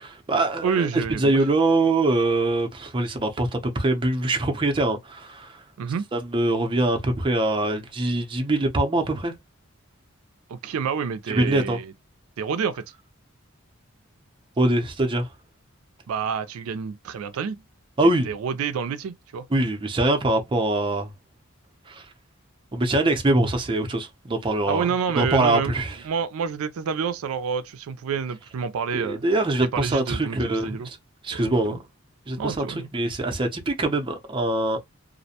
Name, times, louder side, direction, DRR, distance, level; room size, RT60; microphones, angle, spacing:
voice 1, 0.0-0.9 1.2-5.6 6.1-9.3 11.3-11.8 14.6-15.3 18.0-18.3 19.5-21.1 21.9-22.1 22.7-24.8 25.2-26.0 28.9-31.0 31.2-31.8 32.3-34.8, right 2 dB, 25° right, 0.5 m, -23 dB
voice 2, 0.6-1.4 5.8-6.1 10.5-11.9 12.4-12.8 16.1-17.6 18.3-19.4 24.7-25.7 26.0-29.2 29.7-30.9 31.3-31.8 32.4-32.9, right 6 dB, 85° right, 0.4 m, -28 dB
2.4 x 2.1 x 2.7 m
head